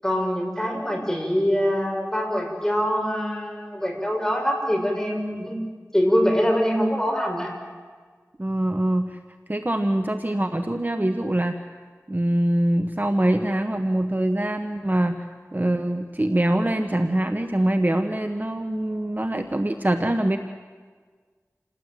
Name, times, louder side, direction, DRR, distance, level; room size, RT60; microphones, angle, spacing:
voice 1, 0.0-5.6 5.9-7.5, equal, 10° left, 1 dB, 7.1 m, -24 dB
voice 2, 8.4-9.2 9.5-11.7 12.1-15.3 15.5-20.4, right 1 dB, 35° right, 6 dB, 1.4 m, -24 dB
28.5 x 19.0 x 9.3 m, 1.5 s
wide cardioid pair, 45°, 6 cm